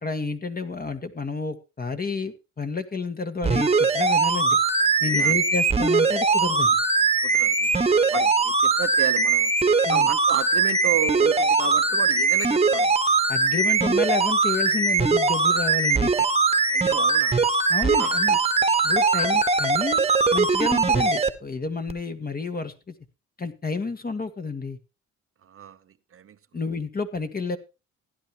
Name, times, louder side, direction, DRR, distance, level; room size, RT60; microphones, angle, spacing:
voice 1, 0.0-4.6 5.0-6.8 9.9-10.1 13.3-16.1 17.7-18.4 18.8-22.9 23.4-24.8 26.5-27.6, left 4 dB, 30° left, 1.8 m, -30 dB
sound 1, 3.4-21.3 21.9-22.0, right 4 dB, 20° right, 1.3 m, -21 dB
voice 2, 5.0-5.3 7.2-9.5 9.9-12.9 16.7-17.4 18.0-18.1 19.2-19.3 25.4-25.8 26.1-26.4, right 9 dB, 45° right, 0.8 m, -33 dB
16.0 x 11.0 x 3.0 m
cardioid pair, 90°, 30 cm